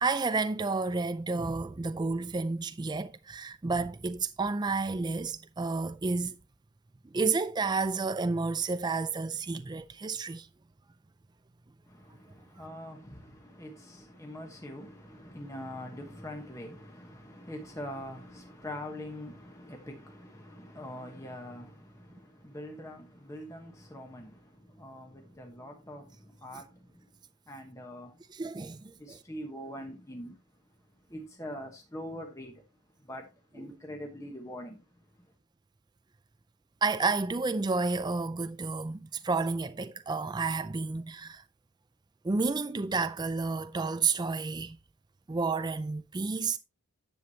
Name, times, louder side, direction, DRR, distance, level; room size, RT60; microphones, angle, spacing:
voice 1, 0.0-6.3 7.1-10.5 28.4-29.2 36.8-41.4 42.2-44.8 45.3-46.6, right 4 dB, 20° right, 0.4 m, -30 dB
voice 2, 11.8-27.2 27.5-28.2 29.0-30.4 30.8-32.7 32.9-35.3, left 1 dB, 15° left, 1.1 m, -44 dB
10.5 x 7.9 x 2.8 m
head